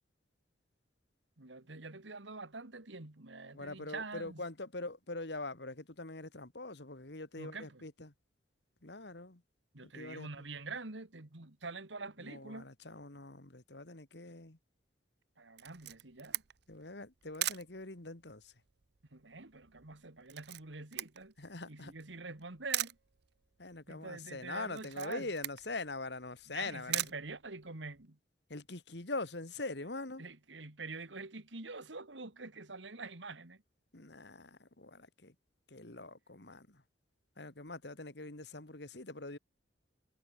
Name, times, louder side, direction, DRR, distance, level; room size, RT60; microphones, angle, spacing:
voice 1, 1.4-4.4 7.4-7.8 9.7-12.7 15.4-16.4 19.1-21.3 21.7-23.0 23.9-25.3 26.5-28.2 30.2-33.6, right 3 dB, 80° right, 2.2 m, -45 dB
voice 2, 3.5-8.1 8.8-9.4 10.0-10.3 12.2-14.6 16.7-18.6 21.4-21.9 23.6-27.0 28.5-30.2 33.9-35.4 35.7-36.8 37.4-39.4, left 2 dB, 60° left, 2.3 m, -43 dB
Camera, 15.6-28.1, right 14 dB, 60° right, 0.7 m, -42 dB
head